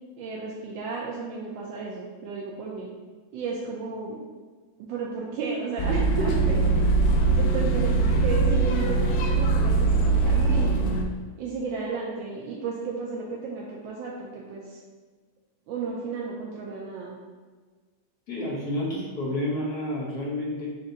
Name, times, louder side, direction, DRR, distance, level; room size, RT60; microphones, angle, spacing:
voice 1, 0.2-2.9 3.3-4.2 4.9-6.9 7.4-10.9 11.4-14.8 15.7-17.2, right 4 dB, 75° right, -3 dB, 1.3 m, -33 dB
sound 1, 5.8-11.0, right 3 dB, 85° left, 0.8 m, -22 dB
voice 2, 18.3-20.7, left 1 dB, 60° left, -4 dB, 1.2 m, -30 dB
5.3 x 2.6 x 3.8 m, 1.4 s
omnidirectional pair, 2.2 m